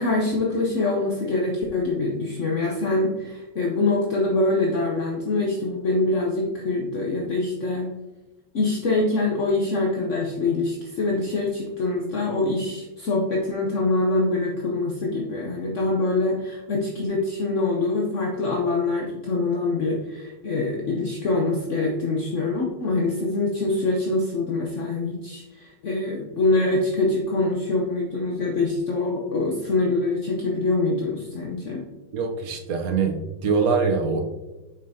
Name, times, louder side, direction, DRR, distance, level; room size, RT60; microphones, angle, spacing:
voice 1, 0.0-7.9 8.5-31.8, left 2 dB, 60° left, -1 dB, 0.7 m, -24 dB
voice 2, 32.1-34.2, right 5 dB, 60° right, 4 dB, 1.0 m, -23 dB
7.5 x 5.4 x 2.7 m, 1.1 s
omnidirectional pair, 2.2 m